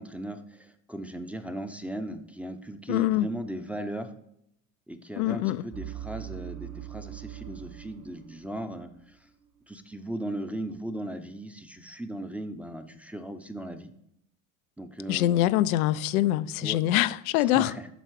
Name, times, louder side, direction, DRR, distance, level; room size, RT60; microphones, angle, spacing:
voice 1, 0.0-4.1 4.9-9.2 9.7-13.9 14.8-15.4 16.6-16.8 17.4-17.9, right 1 dB, 5° right, 0.6 m, -37 dB
voice 2, 2.9-3.3 5.2-5.6 15.1-17.7, left 14 dB, 85° left, 0.5 m, -24 dB
sound 1, 5.7-9.2 9.5-9.8, right 13 dB, 40° right, 1.3 m, -42 dB
7.9 x 5.6 x 4.7 m
supercardioid pair, 95°, 41 cm